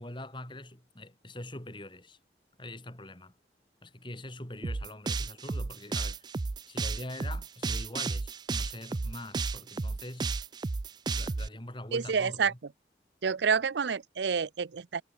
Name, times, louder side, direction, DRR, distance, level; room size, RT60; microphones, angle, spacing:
voice 1, 0.0-2.2 2.6-3.3 3.8-6.3 6.7-10.4 11.1-12.6, left 1 dB, 25° left, 3.6 m, -43 dB
sound 1, 4.6-11.5, right 4 dB, 25° right, 0.3 m, -33 dB
voice 2, 11.9-12.5 13.2-15.0, right 6 dB, 75° right, 0.6 m, -28 dB
head